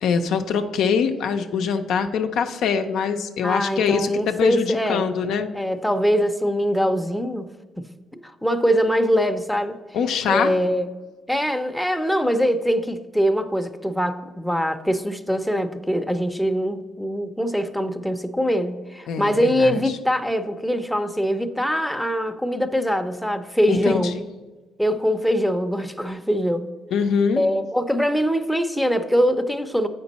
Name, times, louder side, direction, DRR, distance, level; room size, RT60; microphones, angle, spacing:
voice 1, 0.0-5.5 9.9-10.5 19.1-19.9 23.7-24.2 26.9-27.4, left 6 dB, 80° left, 6 dB, 0.5 m, -23 dB
voice 2, 3.4-5.1 5.5-7.9 8.1-9.8 10.3-10.9 11.3-24.2 24.8-26.7 27.4-29.9, equal, ahead, 7 dB, 0.5 m, -23 dB
7.8 x 5.2 x 4.1 m, 1.3 s
cardioid pair, 90°, 0 cm